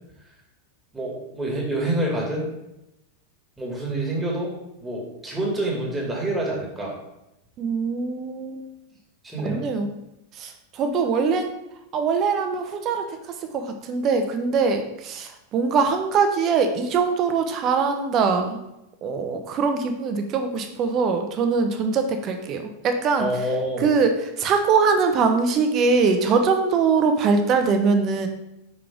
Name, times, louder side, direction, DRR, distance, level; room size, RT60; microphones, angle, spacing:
voice 1, 0.9-2.4 3.6-4.5 4.8-6.9 9.2-9.6 23.2-23.8, right 1 dB, 10° right, -3 dB, 2.3 m, -27 dB
voice 2, 7.6-8.7 9.4-9.9 10.3-11.6 11.9-18.6 19.0-23.3 23.8-28.3, right 5 dB, 40° right, 6 dB, 0.9 m, -22 dB
5.4 x 4.8 x 3.7 m, 0.89 s
figure-of-eight pair, 90°, 0 cm